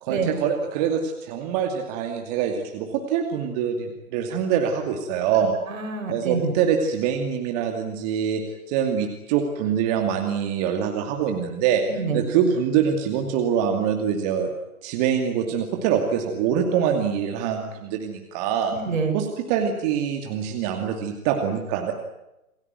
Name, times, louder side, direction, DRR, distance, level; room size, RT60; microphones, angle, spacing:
voice 1, 0.0-5.5 6.1-11.8 12.1-14.5 14.8-18.7 19.1-21.9, right 8 dB, 25° right, 4 dB, 2.6 m, -24 dB
voice 2, 5.7-6.5 11.9-12.2 18.7-19.2, right 4 dB, 65° right, 4 dB, 6.9 m, -27 dB
28.5 x 16.0 x 9.5 m, 0.94 s
hypercardioid pair, 140°, 43 cm